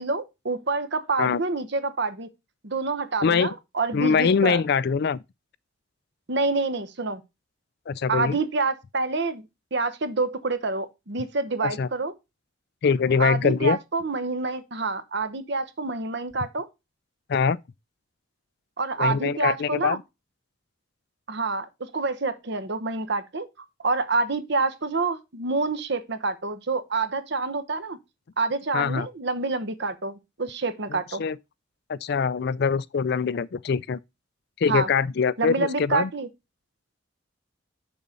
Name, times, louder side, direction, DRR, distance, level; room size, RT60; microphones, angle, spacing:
voice 1, 0.0-2.3 2.6-4.6 6.3-7.2 8.1-9.4 9.7-12.1 13.2-16.7 18.8-20.0 21.3-23.5 23.8-28.0 28.4-31.2 34.7-34.9 35.4-36.3, right 3 dB, 60° right, 1.0 m, -27 dB
voice 2, 3.2-3.5 3.9-5.2 7.9-8.3 11.6-11.9 12.8-13.8 17.3-17.6 19.0-20.0 28.7-29.1 31.2-31.4 31.9-34.0 34.6-36.1, left 5 dB, 55° left, 0.4 m, -23 dB
6.9 x 6.5 x 3.9 m
head